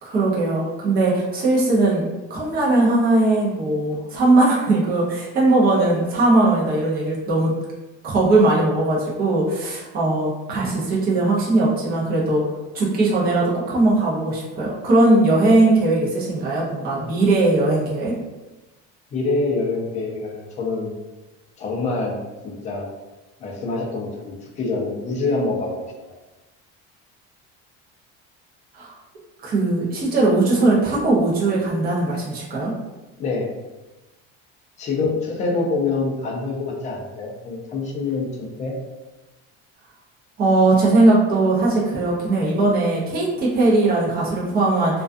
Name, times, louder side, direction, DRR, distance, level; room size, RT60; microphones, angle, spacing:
voice 1, 0.0-7.6 8.0-12.4 12.7-18.1 28.7-28.9 29.4-32.7 40.4-45.0, right 2 dB, 30° right, -5 dB, 0.6 m, -19 dB
voice 2, 19.1-20.9 21.6-22.9 23.4-26.1 33.2-33.5 34.8-38.7, left 3 dB, 25° left, -1 dB, 0.3 m, -26 dB
2.3 x 2.3 x 2.4 m, 1.1 s
cardioid pair, 175°, 29 cm